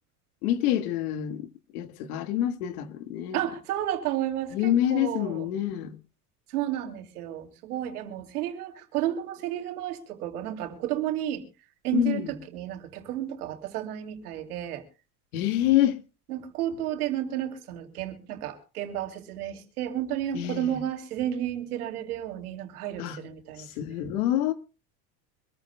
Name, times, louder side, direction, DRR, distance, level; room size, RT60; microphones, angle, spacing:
voice 1, 0.4-1.5 1.7-3.4 4.5-6.0 11.9-12.4 15.3-16.0 20.3-20.8 23.0-23.2 23.8-24.5, left 12 dB, 75° left, 1.8 m, -26 dB
voice 2, 3.3-5.4 6.5-11.4 11.8-14.8 16.3-23.7, right 11 dB, 85° right, 2.8 m, -32 dB
25.0 x 14.5 x 2.2 m
supercardioid pair, 95°, 44 cm